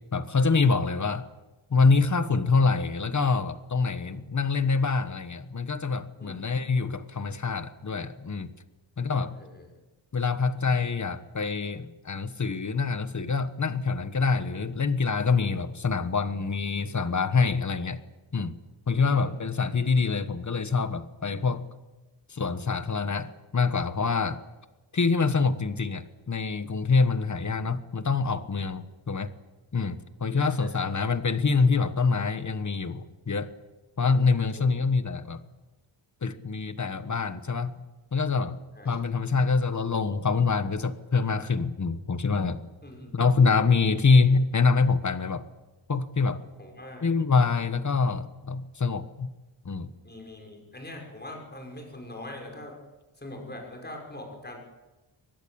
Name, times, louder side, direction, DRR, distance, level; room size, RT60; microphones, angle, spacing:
voice 1, 0.1-1.3 1.7-8.5 9.0-9.4 10.1-18.0 18.3-18.5 18.9-21.6 22.3-24.4 24.9-29.3 29.7-33.5 34.0-35.4 36.2-37.8 38.1-42.7 43.1-45.4 45.9-46.4 47.0-49.3 49.6-49.9, left 4 dB, 35° left, 12 dB, 1.3 m, -25 dB
voice 2, 6.2-6.9 9.0-9.7 19.0-19.3 30.3-30.9 34.3-34.7 38.7-39.0 42.8-43.1 46.6-47.1 50.0-52.8 53.2-54.6, left 1 dB, 20° left, 1 dB, 6.1 m, -43 dB
23.5 x 20.0 x 8.7 m, 1.1 s
wide cardioid pair, 150°, 49 cm